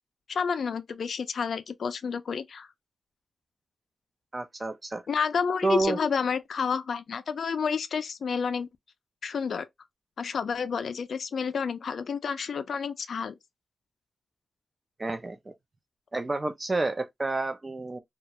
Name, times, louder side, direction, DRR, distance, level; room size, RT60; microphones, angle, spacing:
voice 1, 0.3-2.7 5.1-8.7 9.2-9.7 10.2-13.3, left 6 dB, 60° left, 0.3 m, -30 dB
voice 2, 4.3-5.0 5.6-6.0 15.0-15.5 16.1-18.0, right 3 dB, 20° right, 0.3 m, -29 dB
2.3 x 2.1 x 2.7 m
wide cardioid pair, 180°, 0 cm